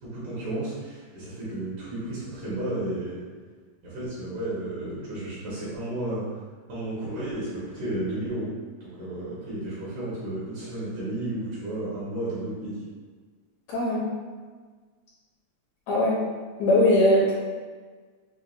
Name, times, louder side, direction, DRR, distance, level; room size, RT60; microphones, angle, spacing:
voice 1, 0.0-3.2 3.8-6.2 6.7-8.5 8.8-12.8, right 1 dB, 70° right, -10 dB, 2.7 m, -32 dB
voice 2, 13.7-14.1 15.9-16.2 16.6-17.3, left 1 dB, 70° left, -7 dB, 2.0 m, -20 dB
6.4 x 2.3 x 2.5 m, 1.5 s
omnidirectional pair, 3.6 m